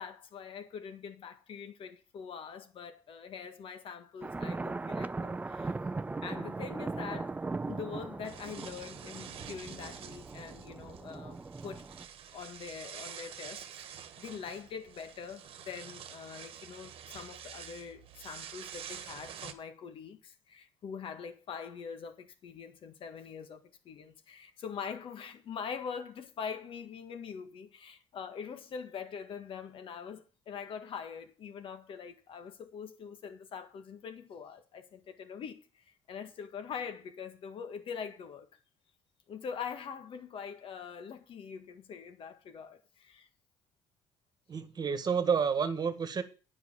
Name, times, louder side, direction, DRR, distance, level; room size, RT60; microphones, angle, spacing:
voice 1, 0.0-5.7 6.2-7.4 7.7-11.9 12.3-38.5 39.3-43.3, left 6 dB, 60° left, 1.8 m, -43 dB
sound 1, 4.2-12.0, right 3 dB, 15° right, 0.5 m, -39 dB
sound 2, 8.2-19.5, right 9 dB, 65° right, 1.3 m, -48 dB
voice 2, 44.5-46.2, right 6 dB, 40° right, 1.6 m, -30 dB
9.6 x 5.5 x 7.3 m
supercardioid pair, 75°, 10 cm